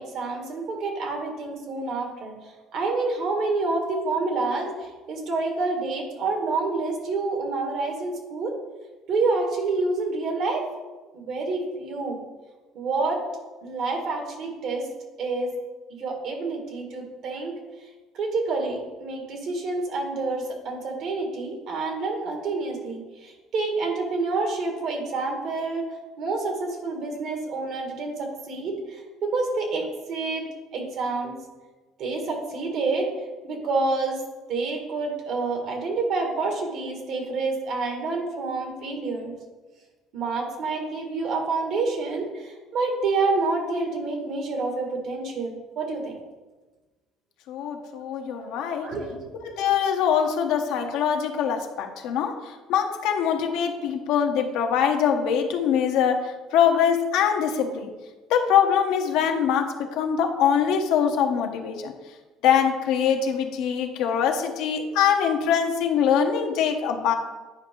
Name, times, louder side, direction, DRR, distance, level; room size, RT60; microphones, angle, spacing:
voice 1, 0.0-8.5 9.1-10.6 11.1-12.2 12.7-13.2 13.6-14.8 15.2-15.5 16.0-17.5 18.1-25.8 26.2-30.4 30.7-31.3 32.0-33.1 33.4-34.2 34.5-39.3 40.1-46.1 47.8-49.3, right 3 dB, 65° right, 2 dB, 1.9 m, -28 dB
voice 2, 47.5-48.9 49.4-52.3 52.7-56.3 56.5-57.9 58.3-61.9 62.4-67.1, left 8 dB, 75° left, 4 dB, 0.9 m, -23 dB
9.4 x 4.9 x 3.8 m, 1.2 s
supercardioid pair, 100°, 0 cm